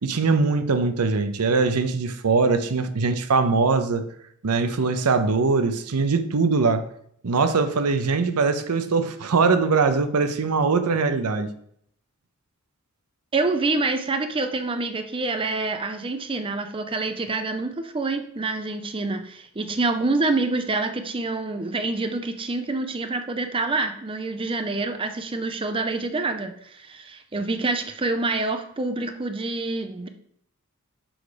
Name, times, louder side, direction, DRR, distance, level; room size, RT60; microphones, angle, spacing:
voice 1, 0.0-4.0 4.4-6.8 7.2-11.5, right 4 dB, 85° right, 0.7 m, -22 dB
voice 2, 13.3-30.1, right 3 dB, 25° right, 0.5 m, -27 dB
6.3 x 4.7 x 4.9 m
head